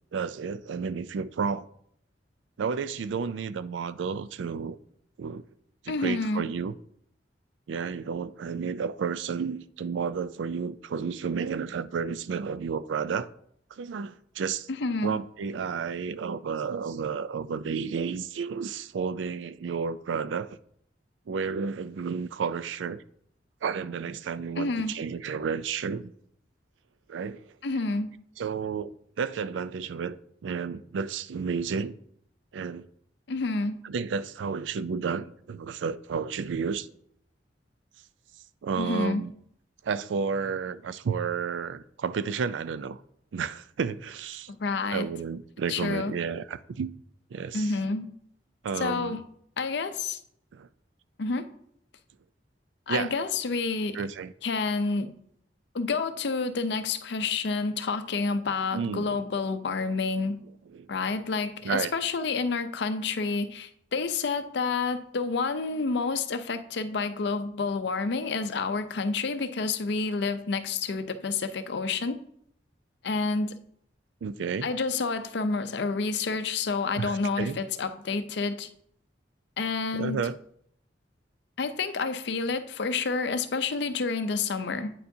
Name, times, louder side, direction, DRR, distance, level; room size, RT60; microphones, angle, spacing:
voice 1, 0.1-1.7 2.6-4.8 5.2-5.4 5.8-6.7 7.7-13.3 13.7-14.7 15.0-20.5 21.3-23.0 23.6-26.1 27.1-27.6 28.4-30.2 30.4-32.0 32.5-32.9 33.8-36.9 38.6-39.3 39.8-43.0 43.3-44.5 44.9-46.9 47.3-47.7 48.6-49.2 50.5-50.7 52.9-53.1 53.9-54.3 58.7-59.2 60.7-60.9 61.6-61.9 74.2-74.7 77.0-77.6 79.9-80.4, right 6 dB, 85° right, 0.4 m, -31 dB
voice 2, 5.9-6.5 14.8-15.2 24.6-24.9 27.6-28.1 33.3-33.8 38.8-39.2 44.6-45.1 45.7-46.1 47.5-48.1 48.8-49.2 49.6-50.2 51.2-51.5 52.9-54.0 54.4-55.1 55.7-60.4 60.9-72.2 73.0-73.6 74.6-78.7 79.6-80.2 81.6-84.9, left 4 dB, 65° left, 0.6 m, -29 dB
9.1 x 6.8 x 2.7 m
head